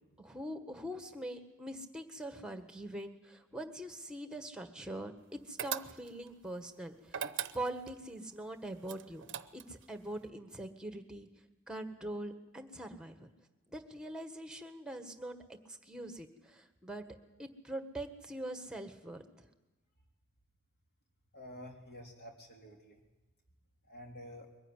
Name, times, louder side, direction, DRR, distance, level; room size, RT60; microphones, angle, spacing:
voice 1, 0.2-5.1 5.5-9.2 9.5-11.3 11.7-13.3 13.7-15.4 15.7-19.5, right 1 dB, 5° right, 7 dB, 1.5 m, -43 dB
sound 1, 5.6-6.3 7.1-8.0 8.9-9.8, right 9 dB, 60° right, 0.8 m, -39 dB
voice 2, 21.3-23.0 23.9-24.5, equal, 50° left, 2 dB, 3.5 m, -50 dB
22.5 x 15.0 x 9.9 m, 1.1 s
head